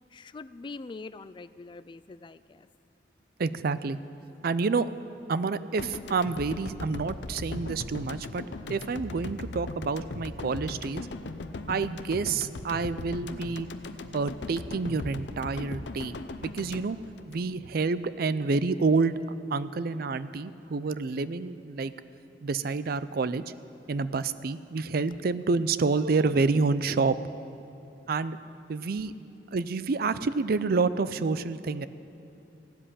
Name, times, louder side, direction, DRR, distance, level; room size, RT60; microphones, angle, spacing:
voice 1, 0.1-2.7, left 3 dB, 25° left, 14 dB, 0.3 m, -43 dB
voice 2, 3.4-4.0 4.4-4.9 5.3-8.4 8.7-11.1 11.7-13.7 14.1-17.0 17.3-19.2 19.5-21.9 22.4-23.4 23.9-27.2 28.1-28.4 28.7-29.1 29.5-31.9, right 4 dB, 55° right, 15 dB, 0.4 m, -28 dB
sound 1, 5.8-18.0, left 2 dB, 75° left, 0.6 m, -39 dB
15.5 x 7.6 x 9.8 m, 3.0 s
head